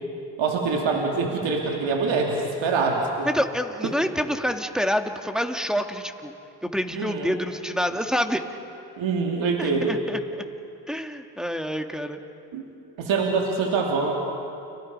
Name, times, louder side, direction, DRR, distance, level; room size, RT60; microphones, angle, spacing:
voice 1, 0.4-3.3 3.8-3.9 6.9-7.3 9.0-9.9 12.5-12.6 13.0-14.1, right 4 dB, 75° right, 0 dB, 2.8 m, -24 dB
voice 2, 3.2-6.3 6.6-8.4 9.6-10.4 10.9-12.2, equal, ahead, 4 dB, 2.2 m, -27 dB
30.0 x 24.0 x 5.5 m, 2.7 s
supercardioid pair, 55°, 47 cm